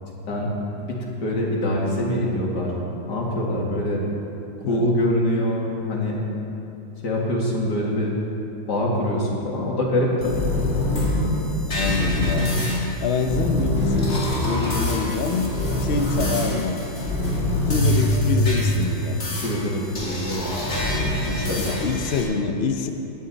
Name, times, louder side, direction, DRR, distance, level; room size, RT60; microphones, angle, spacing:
voice 1, 0.0-2.7 3.1-4.1 4.7-6.2 7.0-8.1 8.7-10.4 19.4-20.9 21.3-21.8, left 1 dB, 55° left, -2 dB, 2.5 m, -24 dB
sound 1, 10.2-22.2, left 1 dB, 30° left, 2.1 m, -24 dB
voice 2, 11.7-12.7 13.0-15.5 15.8-17.0 17.7-19.3 21.5-22.9, left 5 dB, 75° left, 5 dB, 0.5 m, -26 dB
18.0 x 10.5 x 4.1 m, 2.9 s
omnidirectional pair, 2.2 m